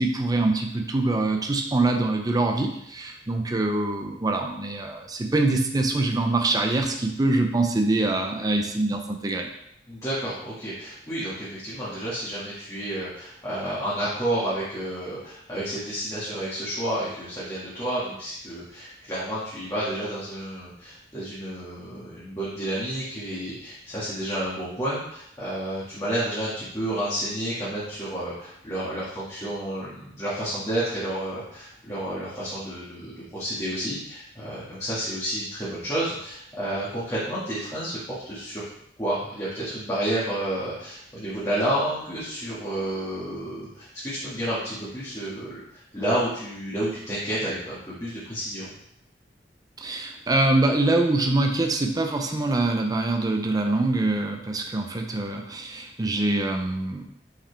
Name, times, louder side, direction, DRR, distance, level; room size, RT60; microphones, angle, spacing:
voice 1, 0.0-9.5 49.8-57.0, right 2 dB, 20° right, 3 dB, 0.6 m, -24 dB
voice 2, 9.9-38.0 38.2-38.6 39.0-48.7, right 1 dB, 20° left, -11 dB, 1.9 m, -30 dB
5.8 x 4.9 x 3.4 m, 0.75 s
head